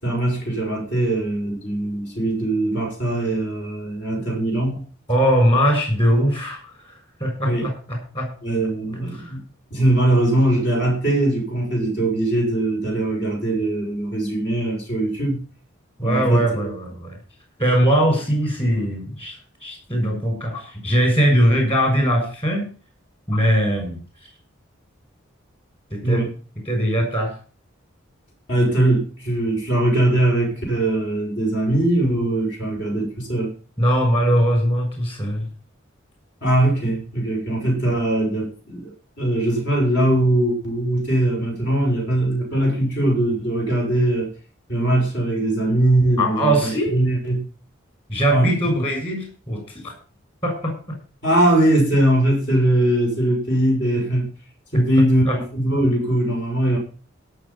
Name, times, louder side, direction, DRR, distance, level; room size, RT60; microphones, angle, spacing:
voice 1, 0.0-4.8 7.4-7.7 8.4-9.4 9.7-15.4 16.0-16.7 26.0-26.3 28.5-33.5 36.4-44.3 44.7-47.5 48.3-48.5 51.2-54.3 54.7-56.8, right 1 dB, 55° left, 1 dB, 6.5 m, -21 dB
voice 2, 5.1-6.6 7.2-8.3 9.1-9.3 16.0-17.2 17.6-19.3 19.6-22.7 23.3-24.0 25.9-26.2 26.7-27.3 33.8-35.5 46.2-47.0 48.1-49.9 50.4-50.7 54.7-54.8 55.2-55.4, equal, 25° left, 3 dB, 6.6 m, -20 dB
17.5 x 6.9 x 5.7 m, 0.38 s
head